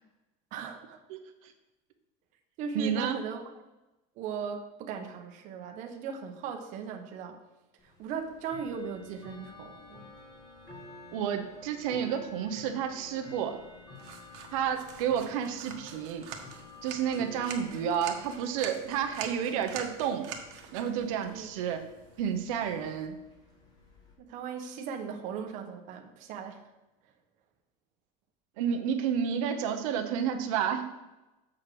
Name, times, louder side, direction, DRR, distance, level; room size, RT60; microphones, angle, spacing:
voice 1, 0.5-1.0 2.6-3.4 4.2-7.4 7.8-10.1 21.3-21.5 24.2-26.7, right 6 dB, 45° right, 4 dB, 1.0 m, -38 dB
voice 2, 2.7-3.2 11.1-13.6 14.5-16.3 16.8-20.3 20.7-21.8 22.2-23.2 28.6-30.9, right 8 dB, 85° right, 5 dB, 1.0 m, -30 dB
Bell / Tick-tock, 7.8-24.1, left 2 dB, 25° left, 1.6 m, -52 dB
sound 1, 14.0-23.1, right 7 dB, 70° right, 1.4 m, -46 dB
7.4 x 5.0 x 6.1 m, 1.0 s
cardioid pair, 165°, 17 cm